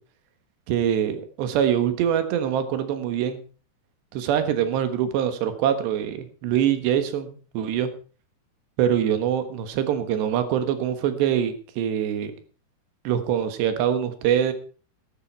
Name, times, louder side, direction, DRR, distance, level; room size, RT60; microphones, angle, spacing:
voice 1, 0.7-3.4 4.1-7.9 8.8-12.3 13.1-14.5, right 9 dB, 85° right, 9 dB, 3.7 m, -24 dB
13.5 x 12.5 x 4.6 m, 0.40 s
omnidirectional pair, 4.8 m